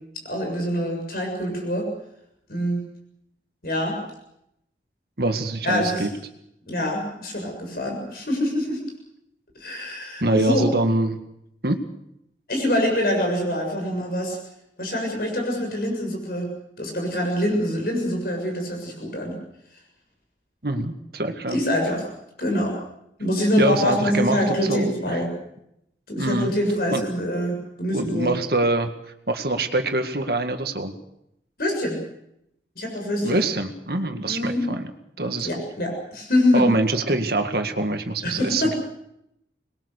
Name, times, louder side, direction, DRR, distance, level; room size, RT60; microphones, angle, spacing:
voice 1, 0.3-1.9 2.5-2.8 3.6-4.0 5.6-6.1 6.7-8.8 9.6-10.6 12.5-14.4 14.8-16.5 16.8-19.3 21.5-22.1 22.4-22.7 23.2-25.3 26.1-28.3 31.6-32.0 32.8-33.4 34.2-34.6 35.4-36.6 38.2-38.8, left 1 dB, 55° left, 1 dB, 7.0 m, -25 dB
voice 2, 5.2-6.1 10.2-11.2 11.6-11.8 20.6-21.6 23.6-25.2 26.2-26.5 26.9-27.0 27.9-28.9 29.3-30.9 33.2-34.9 35.2-35.5 36.5-38.7, right 2 dB, 55° right, 6 dB, 2.0 m, -24 dB
25.5 x 21.5 x 6.7 m, 0.79 s
head